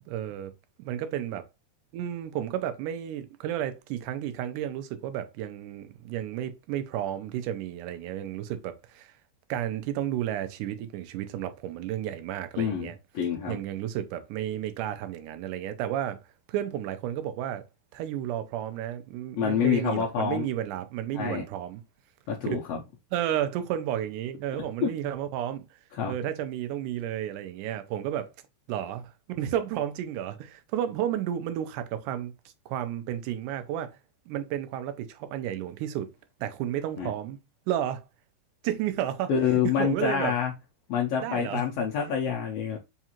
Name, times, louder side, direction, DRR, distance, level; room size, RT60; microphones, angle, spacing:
voice 1, 0.1-0.5 0.8-1.4 1.9-9.1 9.5-13.0 13.5-16.2 16.5-17.6 17.9-21.8 22.5-22.6 23.1-25.7 26.1-28.3 28.7-32.3 32.7-34.0 34.3-36.1 36.4-37.4 37.7-38.0 38.6-40.3 41.2-41.6, right 11 dB, 90° right, 2.1 m, -32 dB
voice 2, 12.6-13.6 19.4-20.5 21.1-21.4 22.3-22.8 24.8-24.9 25.9-26.1 37.0-37.1 39.3-40.5 40.9-42.8, left 8 dB, 80° left, 1.5 m, -27 dB
5.3 x 2.4 x 2.8 m
omnidirectional pair, 3.5 m